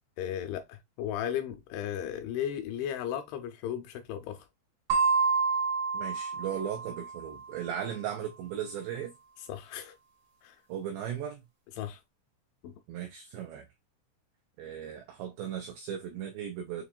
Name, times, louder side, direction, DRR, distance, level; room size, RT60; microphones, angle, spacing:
voice 1, 0.2-4.5 9.4-10.0 10.4-10.6 11.8-12.0 12.6-12.7, left 10 dB, 85° left, 2.7 m, -35 dB
sound 1, 4.9-7.4, right 5 dB, 70° right, 2.1 m, -28 dB
voice 2, 5.9-9.1 10.7-11.4 12.9-13.7 14.6-16.8, right 9 dB, 85° right, 2.4 m, -37 dB
7.1 x 2.9 x 2.2 m
omnidirectional pair, 5.8 m